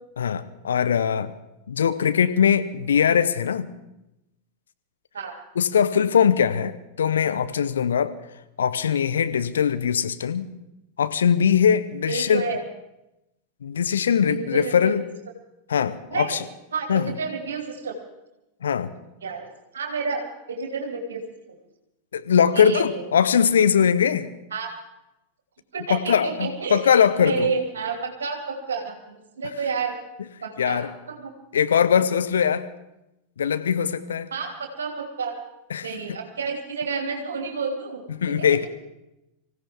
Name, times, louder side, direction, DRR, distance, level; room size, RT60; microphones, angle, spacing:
voice 1, 0.2-1.3 1.7-3.7 5.6-8.1 8.6-10.5 11.0-12.5 13.6-15.0 15.7-16.4 16.9-17.1 18.6-18.9 22.1-24.3 25.9-27.5 30.6-30.9 31.5-32.7 33.4-34.3 35.7-36.2 38.1-38.7, left 7 dB, 65° left, 12 dB, 0.9 m, -21 dB
voice 2, 12.1-12.6 14.3-15.0 16.1-16.4 16.7-17.9 19.2-19.5 19.7-21.6 22.5-23.0 24.5-24.7 25.7-30.0 30.4-31.3 34.3-35.4 35.8-38.7, right 5 dB, 65° right, 3 dB, 2.5 m, -30 dB
25.0 x 15.5 x 3.6 m, 0.93 s
figure-of-eight pair, 90°, 0 cm